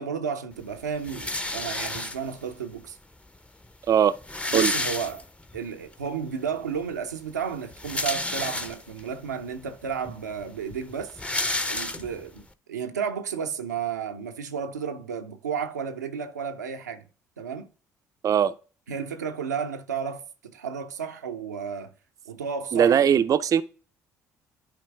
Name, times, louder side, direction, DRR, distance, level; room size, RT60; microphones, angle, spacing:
voice 1, 0.0-3.0 4.5-5.2 5.5-11.2 11.7-17.1 17.4-17.7 18.9-21.9 22.3-23.1, right 7 dB, 90° right, 0.6 m, -32 dB
sound 1, 1.0-2.5 3.3-3.4 3.6-3.7 4.0-5.6 6.0-6.1 7.5-9.1 9.7-9.8 10.1-12.4, left 2 dB, 15° left, 0.7 m, -30 dB
voice 2, 3.9-4.2 4.5-4.7 18.2-18.5 22.7-23.6, right 8 dB, 40° right, 0.5 m, -20 dB
10.5 x 4.5 x 3.4 m
hypercardioid pair, 55°, 9 cm